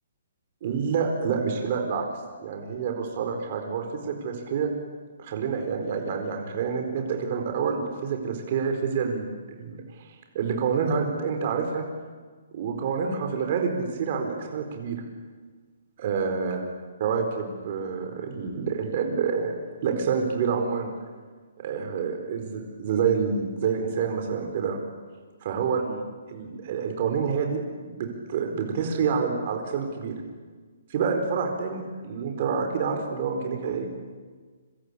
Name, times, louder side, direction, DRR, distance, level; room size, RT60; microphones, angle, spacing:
voice 1, 0.6-2.1 2.4-4.7 5.2-11.8 12.5-15.0 16.0-16.6 17.0-19.6 19.8-20.9 21.6-24.8 25.4-26.0 26.3-30.1 30.9-33.9, right 6 dB, 35° right, 3 dB, 4.4 m, -28 dB
27.0 x 25.5 x 8.5 m, 1.5 s
hypercardioid pair, 170°, 0 cm